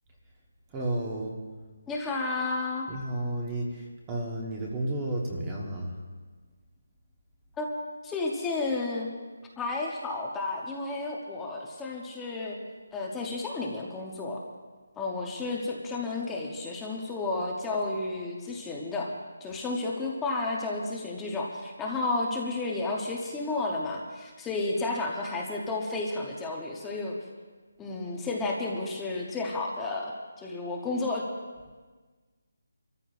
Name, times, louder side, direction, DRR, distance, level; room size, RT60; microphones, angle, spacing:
voice 1, 0.7-1.4 2.9-6.0, right 1 dB, 15° right, -1 dB, 1.1 m, -32 dB
voice 2, 1.9-2.9 7.6-9.1 9.6-12.6 12.9-14.4 15.0-19.1 19.4-27.2 27.8-31.2, left 3 dB, 5° left, -2 dB, 0.8 m, -32 dB
28.5 x 14.0 x 2.5 m, 1.4 s
hypercardioid pair, 175°, 0 cm